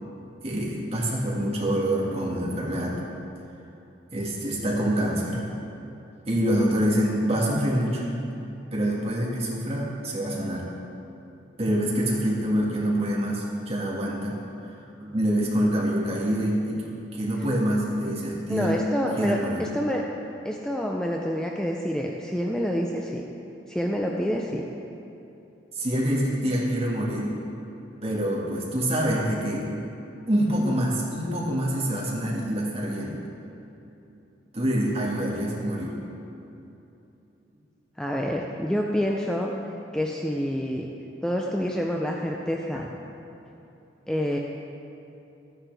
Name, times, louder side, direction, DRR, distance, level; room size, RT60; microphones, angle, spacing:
voice 1, 0.4-3.0 4.1-5.4 6.3-8.0 8.7-10.6 11.6-14.4 15.0-18.8 19.2-19.6 25.7-27.4 28.0-29.7 30.3-33.2 34.5-36.0, equal, 35° right, -4 dB, 1.9 m, -26 dB
voice 2, 18.5-20.0 20.4-23.2 23.7-24.7 38.0-39.5 39.9-40.9 41.2-42.8 44.1-44.4, equal, 5° left, -1 dB, 0.5 m, -27 dB
12.5 x 9.8 x 3.4 m, 2.9 s
head